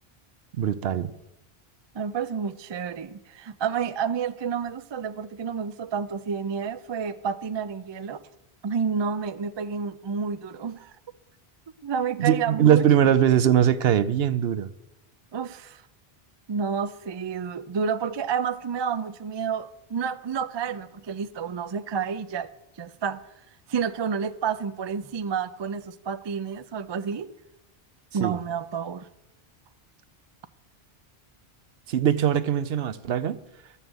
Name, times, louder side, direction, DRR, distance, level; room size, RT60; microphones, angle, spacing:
voice 1, 0.6-1.1 12.2-14.7 28.2-28.4 31.9-33.4, right 9 dB, 75° right, 0.9 m, -21 dB
voice 2, 1.9-8.2 8.6-10.9 11.8-12.8 15.3-15.8 16.5-22.5 22.8-23.3 23.7-27.3 28.1-29.1, right 6 dB, 45° right, 0.3 m, -30 dB
12.5 x 5.6 x 8.0 m
omnidirectional pair, 1.1 m